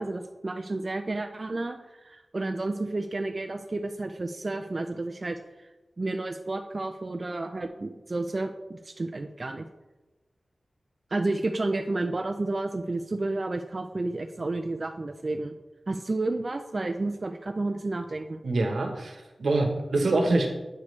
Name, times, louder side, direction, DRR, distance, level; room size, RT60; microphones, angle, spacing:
voice 1, 0.0-5.7 6.0-9.7 11.1-15.5 15.9-18.4, right 2 dB, 45° right, 6 dB, 0.5 m, -31 dB
voice 2, 18.4-20.5, right 2 dB, 85° right, 3 dB, 1.1 m, -25 dB
8.5 x 6.8 x 3.2 m, 1.1 s
wide cardioid pair, 70°, 0 cm